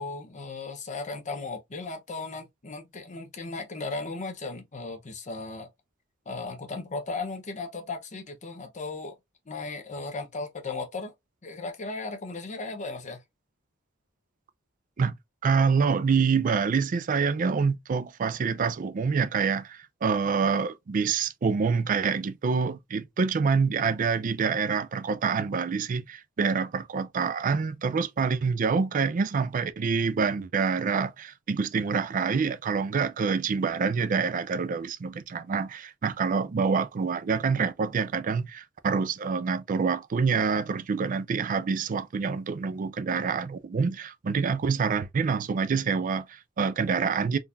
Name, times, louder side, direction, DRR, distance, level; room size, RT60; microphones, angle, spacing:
voice 1, 0.0-5.7 6.3-9.1 9.5-11.1 11.4-13.2, left 3 dB, 35° left, 0.6 m, -36 dB
voice 2, 15.4-47.4, right 5 dB, 40° right, 0.4 m, -26 dB
3.7 x 2.4 x 2.7 m
head